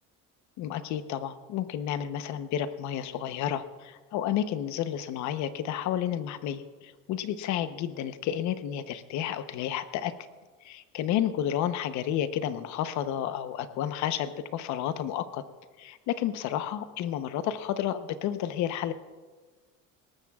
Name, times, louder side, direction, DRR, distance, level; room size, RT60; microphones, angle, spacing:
voice 1, 0.6-10.1 10.6-15.4 15.8-18.9, left 10 dB, 60° left, 11 dB, 0.9 m, -31 dB
21.0 x 18.5 x 2.4 m, 1.4 s
cardioid pair, 165°, 32 cm